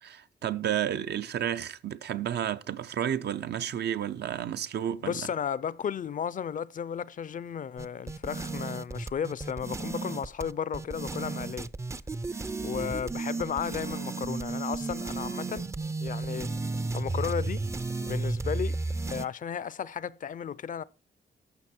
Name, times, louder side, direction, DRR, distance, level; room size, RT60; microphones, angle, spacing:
voice 1, 0.0-5.2, right 10 dB, 75° right, 0.6 m, -31 dB
voice 2, 5.0-11.7 12.6-15.7 16.0-16.5 16.9-17.6 18.0-18.8 19.1-20.8, left 7 dB, 50° left, 0.4 m, -34 dB
sound 1, 7.8-19.3, right 3 dB, 15° right, 0.4 m, -33 dB
13.5 x 6.0 x 4.3 m
wide cardioid pair, 115°, 17 cm